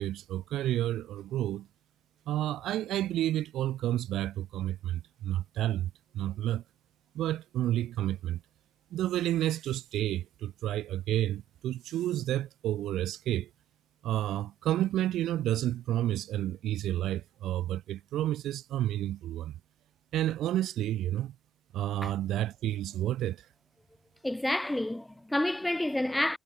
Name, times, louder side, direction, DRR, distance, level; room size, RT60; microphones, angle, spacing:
voice 1, 0.0-1.7 2.3-6.6 7.1-8.4 8.9-13.5 14.0-19.5 20.1-21.4 21.7-23.5, right 13 dB, 80° right, 1.9 m, -30 dB
voice 2, 24.2-26.4, left 1 dB, 10° left, 2.5 m, -29 dB
cardioid pair, 90°, 0 cm